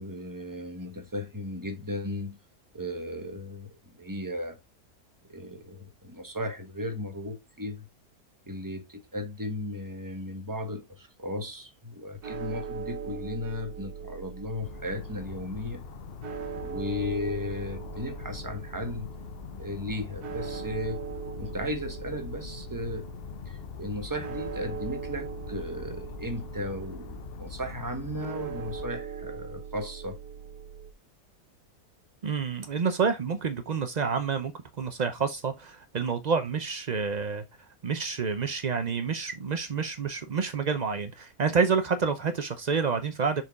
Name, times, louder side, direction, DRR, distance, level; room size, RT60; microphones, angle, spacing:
voice 1, 0.0-2.4 2.7-4.6 5.3-7.9 8.5-15.8 16.6-19.1 19.6-21.0 21.4-23.1 23.5-30.2, left 1 dB, 15° right, 1.1 m, -35 dB
sound 1, 12.2-30.9, right 7 dB, 80° right, 1.6 m, -41 dB
sound 2, 14.6-28.9, left 9 dB, 65° left, 0.6 m, -43 dB
voice 2, 32.2-34.5 34.8-37.4 37.8-43.4, right 5 dB, 60° right, 0.4 m, -28 dB
6.8 x 4.6 x 3.5 m
omnidirectional pair, 1.7 m